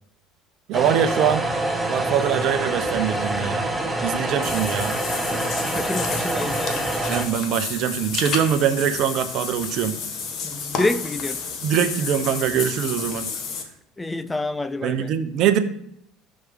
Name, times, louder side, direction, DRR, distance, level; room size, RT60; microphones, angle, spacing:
sound 1, 0.7-7.3, right 1 dB, 5° right, 1.2 m, -26 dB
voice 1, 0.7-1.5 1.9-3.7 4.0-4.9 7.1-10.0 11.6-13.3 14.8-15.6, right 9 dB, 60° right, 11 dB, 0.8 m, -23 dB
Water / Bathtub (filling or washing), 4.4-13.6, left 5 dB, 55° left, 1.4 m, -31 dB
voice 2, 5.7-6.8 10.4-11.4 14.0-15.1, left 2 dB, 15° left, 14 dB, 0.5 m, -27 dB
6.2 x 4.7 x 5.5 m, 0.72 s
hypercardioid pair, 80°, 0 cm